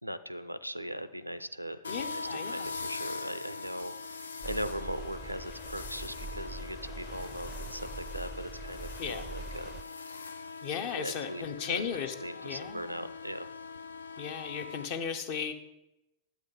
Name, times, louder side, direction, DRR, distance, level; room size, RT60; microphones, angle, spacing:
voice 1, 0.0-9.8 11.0-11.8 12.2-13.5, equal, 90° right, 14 dB, 0.4 m, -39 dB
sound 1, 1.8-14.9, left 4 dB, 70° left, 0.4 m, -42 dB
voice 2, 1.9-2.7 9.0-9.2 10.6-12.1 12.4-13.1 14.2-15.5, left 7 dB, 45° left, 9 dB, 0.8 m, -36 dB
sound 2, 4.4-9.8, right 2 dB, 5° left, 0.5 m, -43 dB
10.5 x 8.1 x 3.8 m, 0.91 s
figure-of-eight pair, 90°, 0 cm